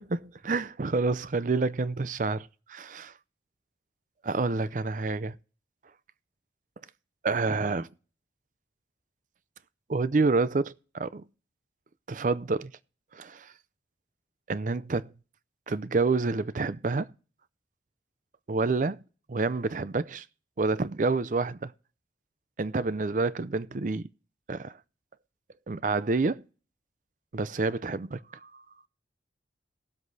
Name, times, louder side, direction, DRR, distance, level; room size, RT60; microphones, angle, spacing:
voice 1, 0.0-3.1 4.2-5.3 7.2-7.9 9.9-11.2 12.1-12.7 13.1-13.5 14.5-15.1 15.7-17.1 18.5-19.0 19.3-20.3 20.6-21.7 22.6-24.1 24.5-24.8 25.7-26.4 27.3-28.6, right 3 dB, 45° right, 0.5 m, -28 dB
19.0 x 7.9 x 2.7 m
head